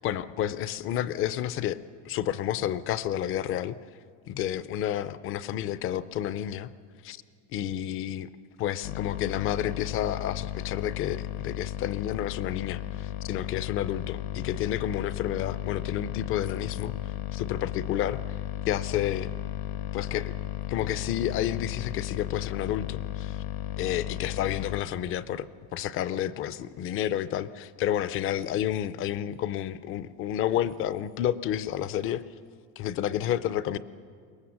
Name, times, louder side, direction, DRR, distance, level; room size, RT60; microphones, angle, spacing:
voice 1, 0.0-1.8 2.0-3.7 4.3-6.7 7.0-7.2 7.5-8.3 8.6-18.2 18.7-19.3 19.9-20.3 20.7-23.4 23.8-25.5 25.7-32.2 32.8-33.8, left 11 dB, 35° left, 16 dB, 0.5 m, -30 dB
sound 1, 8.8-24.8, left 13 dB, 80° left, 1.5 m, -35 dB
22.5 x 19.0 x 7.2 m, 2.1 s
cardioid pair, 175°, 39 cm